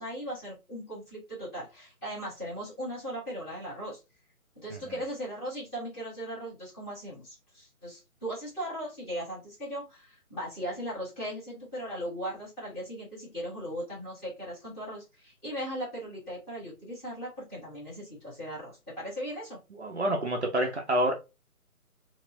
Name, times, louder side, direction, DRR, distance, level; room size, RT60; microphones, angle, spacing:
voice 1, 0.0-4.0 4.5-19.6, equal, 10° left, 1.1 m, -38 dB
voice 2, 19.8-21.1, right 1 dB, 50° right, 0.6 m, -27 dB
4.1 x 2.0 x 2.6 m
figure-of-eight pair, 145°, 44 cm